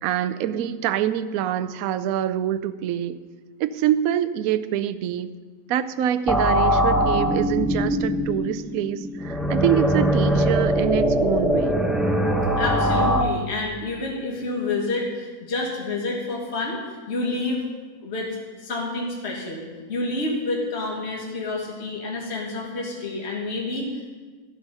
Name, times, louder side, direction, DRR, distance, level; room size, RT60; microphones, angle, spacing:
voice 1, 0.0-3.2 3.6-5.3 5.7-11.7, right 10 dB, 70° right, 11 dB, 0.9 m, -25 dB
sound 1, 6.3-13.2, equal, ahead, 0.3 m, -22 dB
voice 2, 12.6-17.6 18.0-18.3 18.6-19.6 19.9-24.2, left 2 dB, 40° left, -2 dB, 1.9 m, -28 dB
14.0 x 8.0 x 5.4 m, 1.4 s
omnidirectional pair, 1.8 m